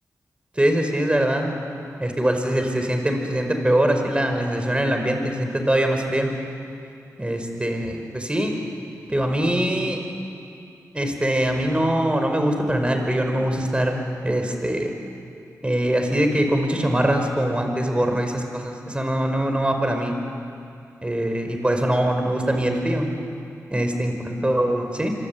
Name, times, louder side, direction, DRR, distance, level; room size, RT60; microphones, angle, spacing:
voice 1, 0.6-1.5 2.0-6.3 7.2-8.6 9.1-10.0 10.9-14.9 15.6-20.1 21.0-23.1 23.7-25.1, right 1 dB, 20° right, 4 dB, 5.2 m, -22 dB
25.5 x 24.5 x 8.8 m, 2.5 s
cardioid pair, 50°, 6 cm